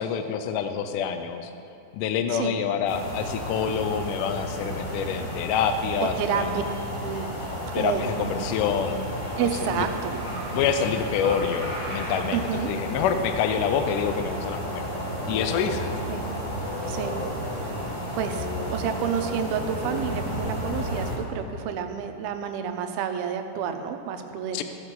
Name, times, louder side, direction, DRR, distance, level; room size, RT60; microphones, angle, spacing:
voice 1, 0.0-1.5 1.9-6.6 7.7-9.0 9.4-9.5 9.8-9.9 10.5-14.9 15.3-15.9 24.5-24.6, left 7 dB, 80° left, 8 dB, 1.9 m, -27 dB
voice 2, 2.3-2.6 6.0-6.6 7.0-7.3 7.6-8.4 9.4-10.2 12.3-12.7 16.1-16.3 16.9-17.2 18.1-24.6, right 7 dB, 90° right, 7 dB, 2.6 m, -29 dB
sound 1, 2.9-21.2, equal, 20° left, 1.3 m, -32 dB
15.0 x 6.6 x 5.4 m, 2.7 s
omnidirectional pair, 4.3 m